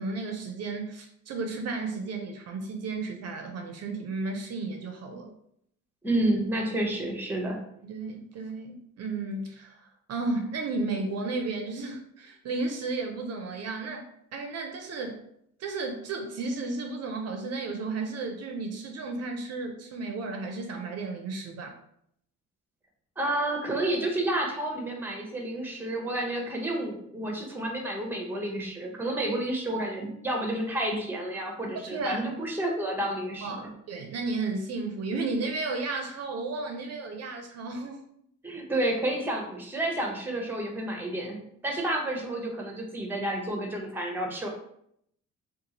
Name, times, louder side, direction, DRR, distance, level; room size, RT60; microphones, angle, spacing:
voice 1, 0.0-5.3 7.8-15.2 15.6-21.8 31.8-32.2 33.4-38.0, right 3 dB, 55° right, 3 dB, 0.5 m, -33 dB
voice 2, 6.0-7.6 23.2-33.7 38.4-44.5, right 1 dB, 5° right, 1 dB, 0.7 m, -30 dB
2.6 x 2.3 x 2.8 m, 0.72 s
cardioid pair, 90°, 30 cm